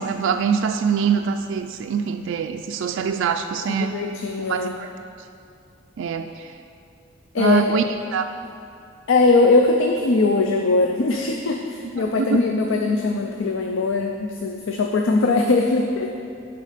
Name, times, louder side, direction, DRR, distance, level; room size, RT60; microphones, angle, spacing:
voice 1, 0.0-4.0 4.4-4.9 6.0-6.5 7.4-7.8 8.1-8.3 11.9-12.4, right 6 dB, 65° right, 6 dB, 0.3 m, -24 dB
voice 2, 3.8-4.7 7.3-7.8 9.1-16.1, left 3 dB, 65° left, 2 dB, 0.5 m, -20 dB
10.5 x 4.1 x 5.0 m, 2.4 s
head